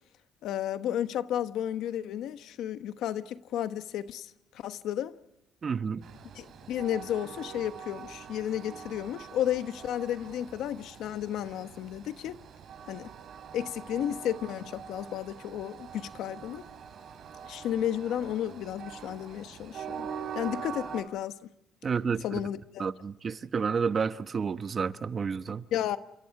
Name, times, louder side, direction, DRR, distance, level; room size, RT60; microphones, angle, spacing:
voice 1, 0.4-5.1 6.3-12.3 12.9-13.1 13.5-16.6 17.5-20.1 20.3-21.4 22.2-22.9 25.7-26.0, left 11 dB, 85° left, 1.1 m, -33 dB
voice 2, 5.6-6.0 21.8-22.4 22.8-25.6, right 6 dB, 45° right, 1.1 m, -30 dB
Train, 6.0-21.0, right 7 dB, 65° right, 4.3 m, -44 dB
29.5 x 27.5 x 4.8 m
cardioid pair, 90°, 0 cm